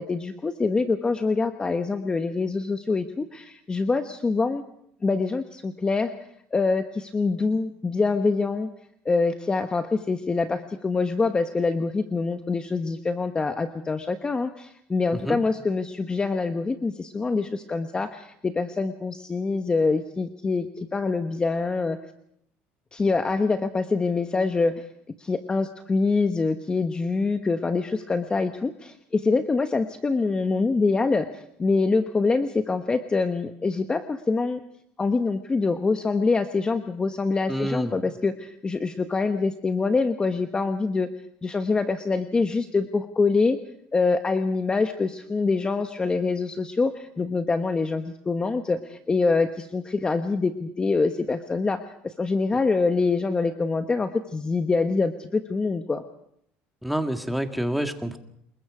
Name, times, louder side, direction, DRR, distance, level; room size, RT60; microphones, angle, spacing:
voice 1, 0.0-4.6 5.0-6.1 6.5-8.7 9.0-22.0 22.9-24.8 25.2-34.6 35.0-41.1 41.4-43.6 43.9-56.0, left 4 dB, 20° left, 8 dB, 1.1 m, -25 dB
voice 2, 37.5-37.9 56.8-58.2, right 1 dB, ahead, 6 dB, 1.9 m, -28 dB
27.5 x 21.5 x 5.0 m, 0.71 s
cardioid pair, 120°, 5 cm